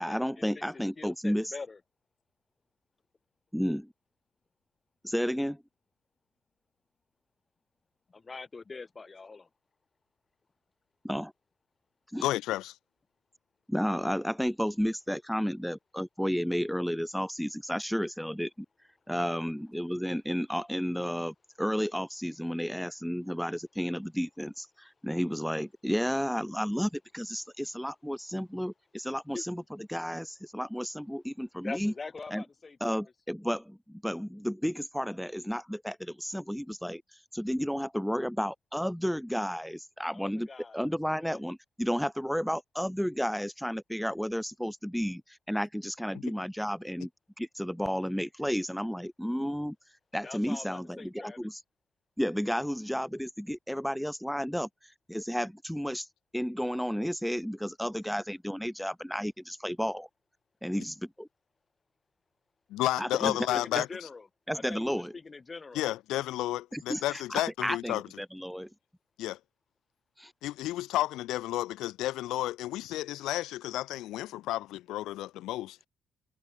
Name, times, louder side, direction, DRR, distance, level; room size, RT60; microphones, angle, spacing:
voice 1, 0.0-1.5 3.5-3.9 5.0-5.6 11.0-11.3 12.1-12.2 13.7-18.7 19.1-29.6 29.9-31.9 32.3-32.4 32.8-40.5 40.7-47.1 47.4-49.8 50.1-51.6 52.2-56.1 56.3-60.1 60.6-60.9 63.0-63.3 63.7-63.8 64.5-65.1 66.7-68.7 70.2-70.3, equal, ahead, 0.7 m, -32 dB
voice 2, 0.6-1.8 8.1-9.5 29.3-29.4 31.6-33.0 40.1-40.9 41.2-41.4 50.2-51.4 63.2-64.3 64.5-65.8, left 4 dB, 30° left, 2.2 m, -43 dB
voice 3, 12.2-12.8 62.7-64.1 65.7-68.0 69.2-69.4 70.4-75.8, left 15 dB, 90° left, 0.4 m, -32 dB
cardioid pair, 90°, 0 cm